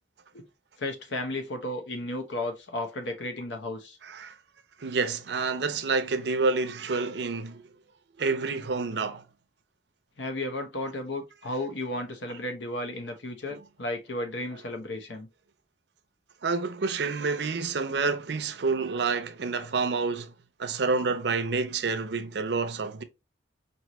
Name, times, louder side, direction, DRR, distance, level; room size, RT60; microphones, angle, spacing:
voice 1, 0.8-4.0 10.2-15.3, left 1 dB, 85° left, 1.0 m, -34 dB
voice 2, 4.0-4.4 4.8-7.6 8.2-9.2 13.5-13.6 16.4-20.3 20.6-23.0, right 4 dB, 70° right, 0.6 m, -28 dB
4.5 x 2.8 x 3.0 m
head